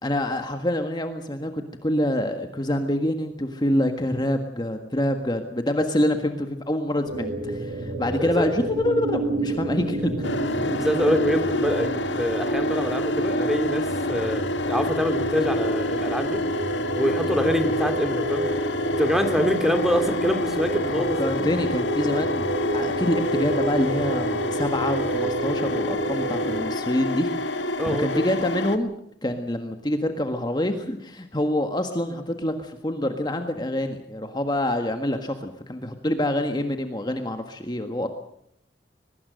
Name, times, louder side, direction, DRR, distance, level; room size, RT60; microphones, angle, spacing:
voice 1, 0.0-10.3 17.2-17.3 21.2-28.9 29.2-38.1, left 1 dB, 25° left, 6 dB, 1.6 m, -26 dB
sound 1, 7.0-26.7, right 2 dB, 80° right, 5.9 m, -31 dB
voice 2, 8.2-8.5 10.6-16.4 17.0-18.5 19.0-21.3 27.8-28.3, equal, ahead, 6 dB, 2.5 m, -25 dB
sound 2, 10.2-28.8, left 1 dB, 90° left, 1.9 m, -27 dB
22.5 x 21.5 x 6.5 m, 0.74 s
head